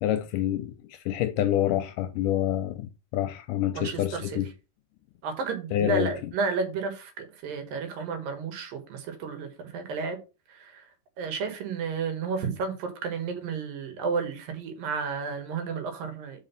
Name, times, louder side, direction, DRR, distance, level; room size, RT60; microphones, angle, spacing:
voice 1, 0.0-4.5 5.7-6.1, left 12 dB, 80° left, 2.0 m, -27 dB
voice 2, 3.7-4.4 5.2-10.2 10.5-10.9 11.2-16.4, right 5 dB, 75° right, 3.2 m, -32 dB
5.5 x 5.2 x 5.7 m
omnidirectional pair, 4.1 m